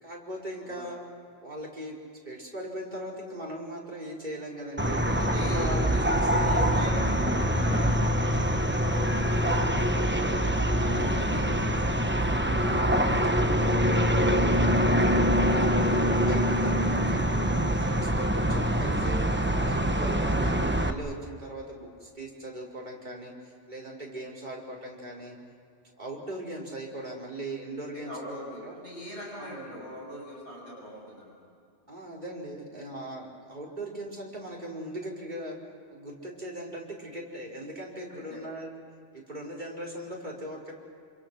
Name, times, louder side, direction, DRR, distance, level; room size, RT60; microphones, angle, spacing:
voice 1, 0.0-1.0 1.4-2.0 2.2-5.0 5.4-6.7 10.8-11.4 12.5-14.0 14.2-14.7 15.0-17.3 17.6-19.3 19.6-25.4 26.0-28.8 29.3-29.8 31.9-35.6 35.9-38.7 39.1-40.7, right 1 dB, 40° right, -2 dB, 4.8 m, -39 dB
voice 2, 4.8-6.1 6.4-10.3 10.7-11.9 20.2-20.5 27.9-31.3 31.9-32.0 38.1-38.4, equal, 75° left, -3 dB, 7.4 m, -42 dB
sound 1, 4.8-20.9, equal, 10° right, 1.0 m, -24 dB
27.5 x 27.0 x 6.2 m, 2.5 s
omnidirectional pair, 1.2 m